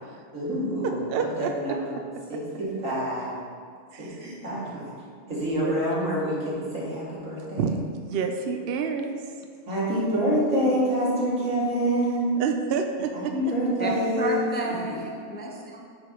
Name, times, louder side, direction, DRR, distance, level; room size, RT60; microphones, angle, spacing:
voice 1, 0.3-1.9 2.3-3.4 4.0-4.9 5.3-7.7 9.7-12.4 13.1-15.0, equal, 85° right, -7 dB, 2.5 m, -27 dB
voice 2, 1.1-1.5 3.9-4.0 4.5-4.8 5.4-5.7 7.6-7.7 8.0-9.3 12.4-13.3, right 6 dB, 60° right, 5 dB, 0.7 m, -29 dB
voice 3, 14.2-15.8, right 2 dB, 10° left, -1 dB, 0.5 m, -31 dB
9.7 x 4.5 x 3.8 m, 2.2 s
omnidirectional pair, 1.3 m